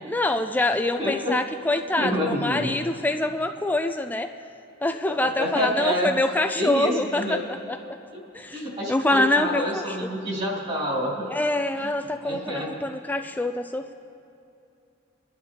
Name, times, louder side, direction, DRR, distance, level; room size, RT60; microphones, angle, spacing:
voice 1, 0.0-4.3 4.8-7.4 7.7-7.8 8.3-8.6 8.9-10.1 11.3-13.9, left 2 dB, 10° left, 6 dB, 0.3 m, -25 dB
voice 2, 1.0-1.3 2.0-2.8 5.0-6.1 6.5-7.4 8.1-8.2 8.5-11.2 12.2-12.7, left 1 dB, 30° right, -4 dB, 2.9 m, -28 dB
26.0 x 11.0 x 2.9 m, 2.6 s
head